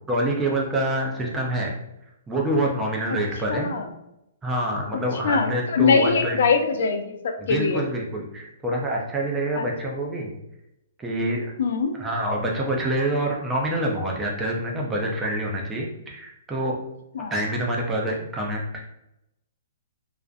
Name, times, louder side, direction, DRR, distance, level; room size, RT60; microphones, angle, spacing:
voice 1, 0.1-1.8 2.3-3.7 4.4-6.4 7.4-10.3 11.0-11.5 11.9-16.7 17.3-18.8, right 1 dB, 10° right, -2 dB, 0.5 m, -26 dB
voice 2, 3.5-3.9 5.2-7.8 9.6-9.7 11.6-11.9 17.1-17.3, left 5 dB, 65° left, 6 dB, 0.4 m, -22 dB
2.4 x 2.0 x 2.5 m, 0.85 s
hypercardioid pair, 155°, 0 cm